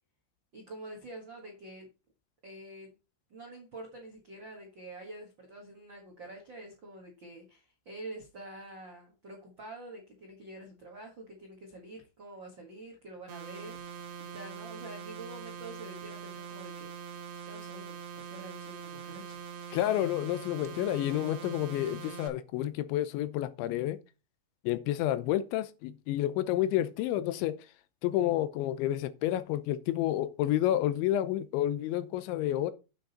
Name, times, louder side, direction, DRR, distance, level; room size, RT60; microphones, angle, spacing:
voice 1, 0.5-1.9 2.4-3.0 3.3-16.9 17.4-19.4 20.3-20.4, right 2 dB, 75° right, 1.0 m, -47 dB
sound 1, 13.3-22.3, right 7 dB, 60° right, 2.6 m, -43 dB
voice 2, 19.7-24.0 24.6-27.5 28.0-32.7, left 13 dB, 85° left, 3.1 m, -30 dB
8.9 x 6.3 x 4.2 m
omnidirectional pair, 5.2 m